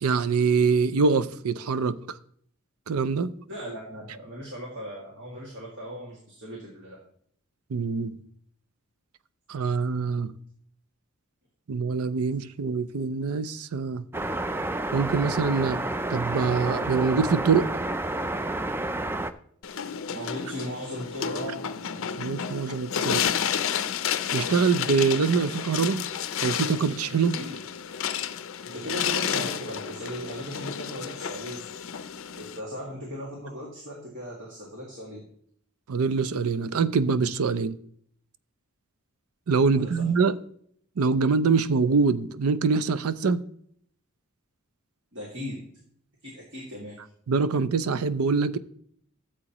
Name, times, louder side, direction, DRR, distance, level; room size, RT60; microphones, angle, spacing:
voice 1, 0.0-2.2 2.9-3.3 7.7-8.1 9.5-10.3 11.7-14.0 14.9-15.8 16.1-17.7 22.2-23.2 24.3-26.1 26.4-27.4 35.9-37.8 39.5-40.4 41.0-43.4 47.3-48.6, right 5 dB, 90° right, 0.5 m, -24 dB
voice 2, 3.5-7.0 20.1-21.6 21.9-22.1 27.4-27.6 28.6-31.6 32.4-35.2 39.7-40.1 45.1-45.6 46.2-47.0, equal, 60° right, 2.1 m, -37 dB
sound 1, 14.1-19.3, right 2 dB, 10° right, 0.3 m, -30 dB
sound 2, 19.6-32.6, left 8 dB, 65° left, 0.5 m, -31 dB
13.5 x 7.5 x 3.0 m
head